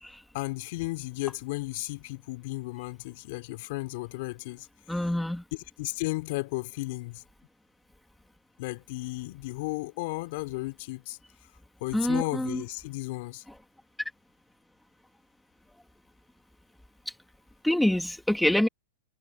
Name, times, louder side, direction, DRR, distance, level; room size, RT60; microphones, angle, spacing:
voice 1, 0.3-4.7 5.5-7.2 8.6-11.2 11.8-13.4, left 22 dB, 55° left, 3.5 m, -34 dB
voice 2, 4.9-5.4 11.9-12.6 17.6-18.7, left 1 dB, ahead, 3.0 m, -26 dB
hypercardioid pair, 125°, 0 cm